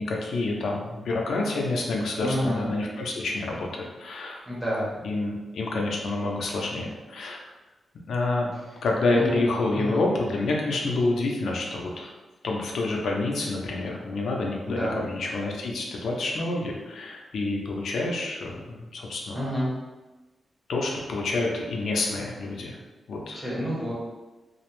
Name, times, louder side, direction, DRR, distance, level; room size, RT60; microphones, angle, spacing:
voice 1, 0.0-4.4 5.0-7.4 8.1-12.1 12.4-19.5 20.7-22.8 23.1-23.5, left 2 dB, 75° left, -1 dB, 0.5 m, -28 dB
voice 2, 2.2-2.6 4.5-4.9 9.1-9.3 9.7-10.0 14.7-15.0 19.3-19.7 23.3-23.9, equal, 10° right, -7 dB, 0.9 m, -28 dB
2.5 x 2.0 x 3.0 m, 1.2 s
wide cardioid pair, 140°, 0 cm